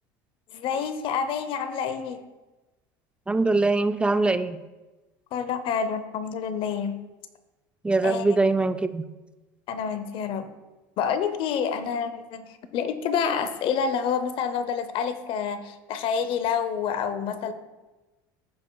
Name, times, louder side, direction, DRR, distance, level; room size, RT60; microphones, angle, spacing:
voice 1, 0.5-2.2 5.3-6.9 8.0-8.3 9.7-10.5 11.0-17.5, left 7 dB, 55° left, 11 dB, 0.8 m, -28 dB
voice 2, 3.3-4.6 7.8-9.0, right 3 dB, 10° right, 11 dB, 0.4 m, -22 dB
15.0 x 5.2 x 2.3 m, 1.1 s
supercardioid pair, 95°, 11 cm